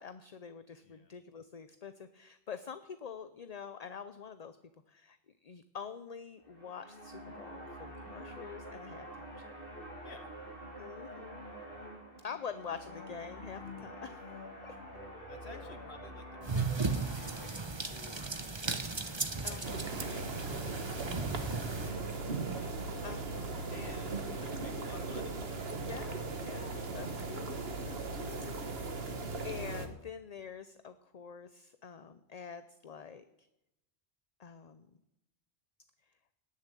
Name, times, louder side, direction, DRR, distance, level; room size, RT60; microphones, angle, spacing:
voice 1, 0.0-4.6 4.9-5.2 5.4-9.5 10.8-11.5 12.2-14.2 14.6-14.8 15.4-15.7 19.4-19.9 23.0-23.6 25.8-29.1 29.4-33.2 34.4-34.9, left 6 dB, 45° left, 11 dB, 0.7 m, -46 dB
voice 2, 0.7-1.1 10.0-10.3 13.6-13.9 15.3-22.8 23.6-25.4, left 4 dB, 80° left, 7 dB, 1.9 m, -54 dB
sound 1, 6.4-17.5, equal, 60° left, 2.7 m, -47 dB
sound 2, 16.4-21.9, right 4 dB, 25° right, 1.0 m, -36 dB
sound 3, 19.6-29.9, right 3 dB, 70° right, 1.6 m, -38 dB
18.5 x 7.2 x 9.1 m, 0.91 s
omnidirectional pair, 1.1 m